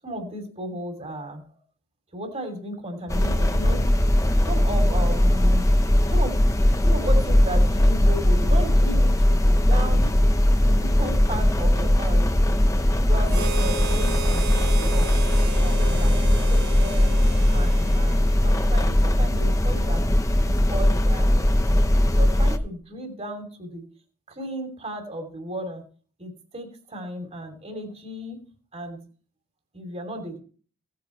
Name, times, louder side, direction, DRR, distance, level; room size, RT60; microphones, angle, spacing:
voice 1, 0.0-1.4 2.1-3.9 4.2-5.7 6.0-6.4 6.8-10.1 10.7-12.2 13.1-15.2 15.6-20.0 20.4-23.8 24.3-25.8 26.2-28.4 28.7-29.0 29.7-30.4, right 1 dB, 30° right, 4 dB, 2.8 m, -35 dB
sound 1, 3.1-22.6, left 1 dB, 15° left, 0.8 m, -19 dB
Harmonica, 13.3-18.8, right 4 dB, 45° right, 1.1 m, -34 dB
17.0 x 9.2 x 3.1 m, 0.41 s
head